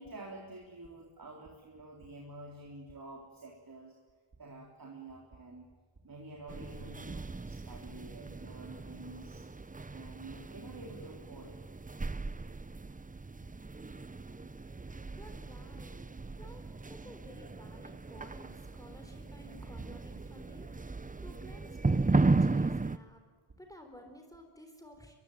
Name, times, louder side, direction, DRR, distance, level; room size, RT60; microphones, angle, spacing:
voice 1, 0.0-4.0 4.4-5.7 6.0-9.4 9.9-11.6, right 2 dB, 45° right, 0 dB, 3.7 m, -49 dB
sound 1, 6.5-23.0, right 3 dB, 15° right, 0.7 m, -35 dB
voice 2, 15.2-16.0 16.4-20.7 21.2-23.2 23.6-25.2, left 1 dB, 5° left, 4 dB, 3.9 m, -54 dB
23.0 x 23.0 x 9.3 m, 1.4 s
wide cardioid pair, 85°, 49 cm